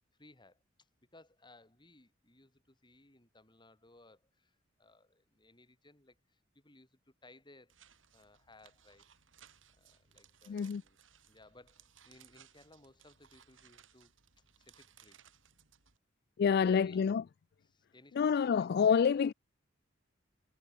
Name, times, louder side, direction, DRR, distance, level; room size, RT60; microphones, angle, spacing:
voice 1, 0.2-0.6 1.1-7.8 8.1-9.1 9.8-11.0 11.3-14.1 14.6-15.2 16.5-17.0 17.7-18.7, left 2 dB, 25° left, 4.2 m, -61 dB
sound 1, 7.7-16.0, right 8 dB, 85° right, 7.1 m, -63 dB
voice 2, 10.5-10.8 16.4-17.2 18.2-19.3, left 6 dB, 55° left, 0.3 m, -27 dB
head